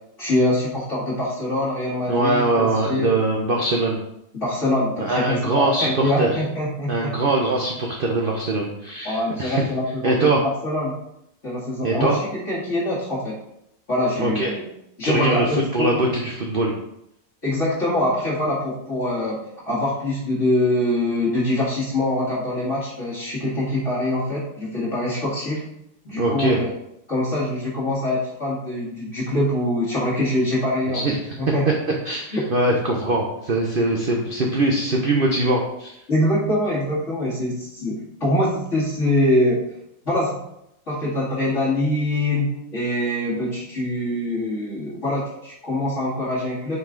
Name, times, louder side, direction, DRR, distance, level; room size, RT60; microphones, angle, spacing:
voice 1, 0.2-3.1 4.3-7.1 9.0-10.9 11.4-13.4 13.9-14.6 15.0-16.0 17.4-19.4 19.7-25.6 26.0-26.7 27.1-31.0 31.4-31.6 32.3-32.4 36.1-39.7 40.1-40.4 40.9-46.8, left 1 dB, 45° left, -7 dB, 2.2 m, -24 dB
voice 2, 2.1-4.0 5.0-6.3 6.9-9.6 10.0-10.4 11.8-12.2 14.2-14.5 15.0-15.5 15.7-16.7 26.2-26.6 30.9-31.2 32.0-36.0, right 2 dB, 40° right, 0 dB, 0.9 m, -22 dB
8.1 x 5.3 x 3.8 m, 0.80 s
omnidirectional pair, 1.8 m